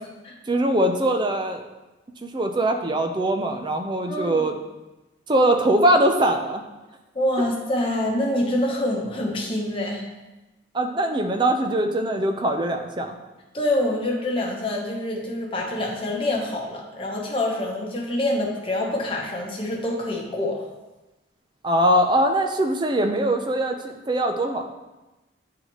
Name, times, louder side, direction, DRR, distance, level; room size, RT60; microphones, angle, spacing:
voice 1, 0.5-1.6 2.2-4.6 5.3-6.6 10.7-13.2 21.6-24.7, right 1 dB, 25° right, 5 dB, 0.5 m, -22 dB
voice 2, 4.1-4.5 7.1-10.0 13.5-20.6, left 1 dB, 30° left, -2 dB, 1.0 m, -26 dB
9.3 x 4.0 x 3.0 m, 1.1 s
head